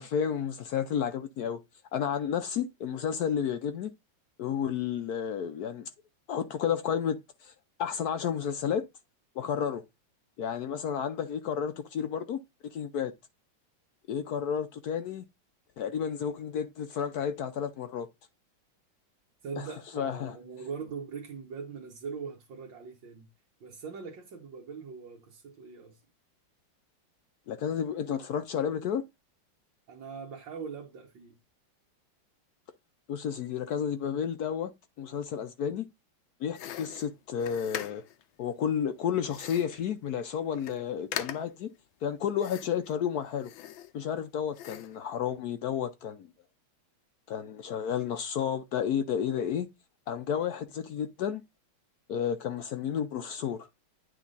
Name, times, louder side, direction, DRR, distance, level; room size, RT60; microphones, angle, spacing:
voice 1, 0.0-1.6 1.9-3.9 4.4-5.9 6.3-7.2 7.4-7.5 7.8-8.8 9.4-9.8 10.4-12.4 12.7-13.1 14.1-15.2 15.8-18.1 20.0-20.4 27.5-29.0 33.1-34.7 35.0-35.9 36.4-38.0 38.4-41.7 42.0-43.5 43.9-46.3 47.3-49.7 50.1-51.4 52.1-53.7, left 8 dB, 70° left, 1.0 m, -31 dB
voice 2, 19.4-23.3 23.6-26.0 29.9-31.4, right 5 dB, 70° right, 1.8 m, -41 dB
sound 1, 36.5-38.2 39.3-39.8 40.2-40.3 40.5-40.8 41.1-41.6 42.4-42.9 43.4-44.2 44.5-45.0, left 11 dB, 85° left, 1.5 m, -41 dB
9.3 x 3.3 x 4.0 m
omnidirectional pair, 2.1 m